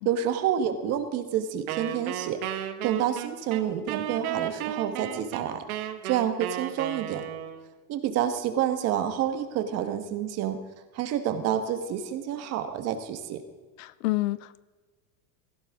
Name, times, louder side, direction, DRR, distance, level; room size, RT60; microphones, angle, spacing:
voice 1, 0.0-2.4 2.8-5.6 6.0-7.2 7.9-10.6 10.9-13.4, right 9 dB, 35° right, 8 dB, 1.5 m, -28 dB
Wind instrument woodwind instrument, 1.7-7.7, right 11 dB, 80° right, 1.6 m, -34 dB
voice 2, 13.8-14.6, left 19 dB, 65° left, 18 dB, 0.7 m, -29 dB
17.0 x 15.0 x 3.7 m, 1.4 s
supercardioid pair, 160°, 43 cm